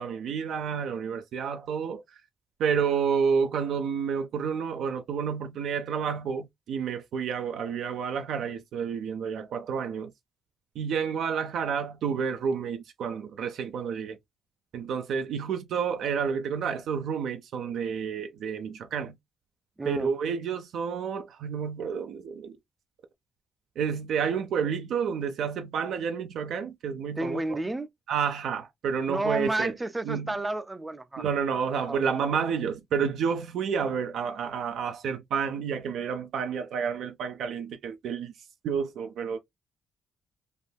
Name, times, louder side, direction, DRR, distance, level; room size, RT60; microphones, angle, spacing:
voice 1, 0.0-2.0 2.6-10.1 10.8-14.2 14.7-19.2 19.9-22.6 23.8-27.6 28.1-29.7 30.0-30.3 31.2-38.3 38.6-39.4, right 6 dB, 75° right, 0.5 m, -30 dB
voice 2, 19.8-20.1 27.2-27.9 29.1-31.3 31.9-32.0, right 2 dB, 15° right, 0.4 m, -31 dB
3.5 x 2.2 x 2.2 m
cardioid pair, 90°, 0 cm